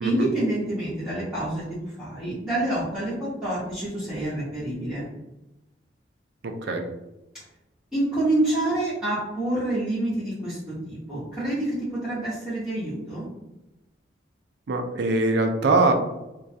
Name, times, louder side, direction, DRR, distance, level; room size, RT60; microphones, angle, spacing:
voice 1, 0.0-5.0 7.9-13.3, right 1 dB, 5° right, -13 dB, 0.7 m, -27 dB
voice 2, 6.4-6.9 14.7-15.9, right 3 dB, 60° right, 4 dB, 0.4 m, -22 dB
2.3 x 2.2 x 2.6 m, 0.96 s
head